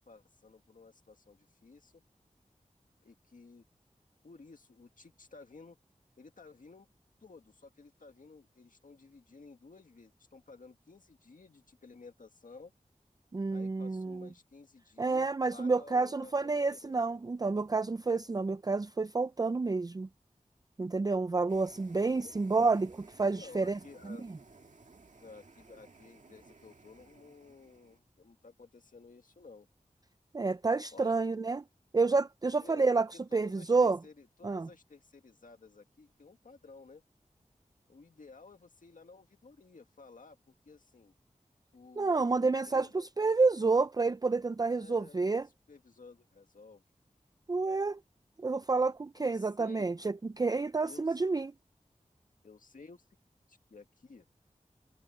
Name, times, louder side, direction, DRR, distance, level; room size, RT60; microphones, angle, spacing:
voice 1, 0.0-2.0 3.0-3.6 4.2-5.8 6.2-6.9 7.2-12.7 13.5-17.2 22.2-22.7 23.3-24.3 25.2-29.7 30.9-31.3 32.6-32.9 33.1-37.0 37.9-40.4 40.7-41.1 41.7-43.1 44.6-46.8 49.2-49.9 50.8-51.2 52.4-53.1 53.5-54.3, left 4 dB, 85° left, 1.8 m, -54 dB
voice 2, 13.3-14.3 15.0-20.1 20.8-23.8 24.0-24.2 30.3-31.6 31.9-33.1 33.3-34.0 34.4-34.7 42.0-45.5 47.5-48.0 48.4-51.5, right 3 dB, 30° right, 0.4 m, -29 dB
sound 1, 21.5-28.0, right 3 dB, 65° right, 2.0 m, -57 dB
wide cardioid pair, 75°, 13 cm